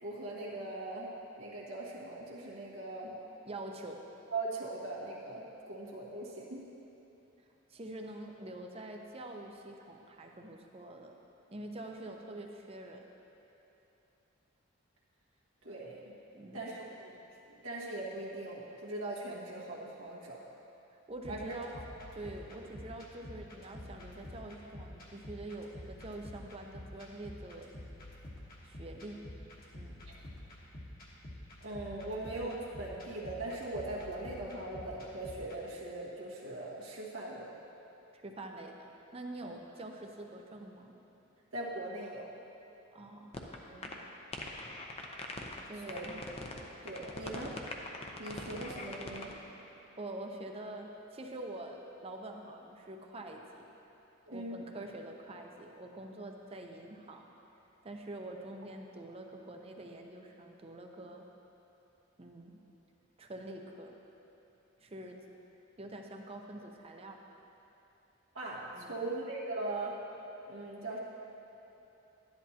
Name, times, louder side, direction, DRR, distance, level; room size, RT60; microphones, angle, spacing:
voice 1, 0.0-3.2 4.3-6.7 15.6-16.2 16.5-17.1 17.4-20.4 21.3-21.9 30.1-30.2 31.6-37.5 39.4-39.5 41.5-42.3 43.6-44.0 45.9-46.1 46.8-47.6 48.2-49.4 54.2-54.6 68.3-70.0 70.5-71.0, right 2 dB, 85° right, -5 dB, 1.5 m, -40 dB
voice 2, 3.5-4.0 7.7-11.1 11.5-13.1 16.3-16.6 20.9-21.7 22.1-27.7 28.6-29.2 29.7-29.9 38.2-40.9 42.9-43.4 45.5-46.2 48.6-48.7 50.0-53.7 54.3-57.3 57.8-61.3 62.2-62.6 63.2-64.0 64.8-65.2 65.8-67.2 68.7-69.0, right 1 dB, 30° right, 2 dB, 0.7 m, -45 dB
sound 1, 21.1-35.6, left 1 dB, 45° left, 1.4 m, -49 dB
sound 2, 43.3-43.6 43.8-43.9 44.3-45.6 45.9-46.6 46.9-49.3, left 2 dB, 30° left, 0.7 m, -41 dB
11.5 x 10.5 x 2.9 m, 3.0 s
head